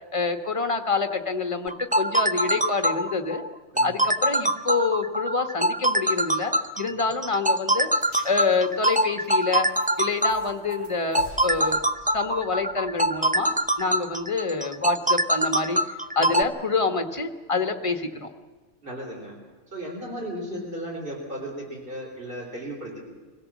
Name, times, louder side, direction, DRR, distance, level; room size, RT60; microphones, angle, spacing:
voice 1, 0.1-3.4 3.8-7.9 8.2-9.7 10.0-11.8 12.1-13.5 13.8-15.8 16.1-18.3 20.5-20.6, left 4 dB, 25° left, 7 dB, 1.4 m, -27 dB
sound 1, 1.7-16.4, right 1 dB, 15° right, 0.3 m, -24 dB
voice 2, 3.7-4.1 6.8-7.0 16.2-16.3 18.8-19.4 19.7-23.0, right 1 dB, 45° right, 0 dB, 4.1 m, -35 dB
sound 2, 8.0-14.4, equal, 75° right, 4.5 m, -49 dB
23.5 x 17.0 x 7.4 m, 1.4 s
omnidirectional pair, 1.3 m